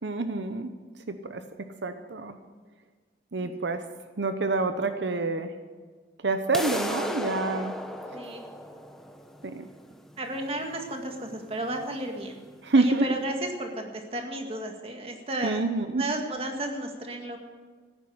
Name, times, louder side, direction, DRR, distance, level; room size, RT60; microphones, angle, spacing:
voice 1, 0.0-0.7 1.1-2.3 3.3-3.8 4.2-5.5 6.2-7.8 9.4-9.7 12.6-13.1 15.4-16.0, right 3 dB, 85° right, 8 dB, 0.9 m, -27 dB
sound 1, 6.5-12.5, left 1 dB, ahead, 0.9 m, -36 dB
voice 2, 8.1-8.4 10.2-12.4 12.7-13.3 13.6-15.6 16.0-17.4, right 1 dB, 30° right, 3 dB, 1.9 m, -33 dB
15.5 x 9.8 x 7.8 m, 1.5 s
head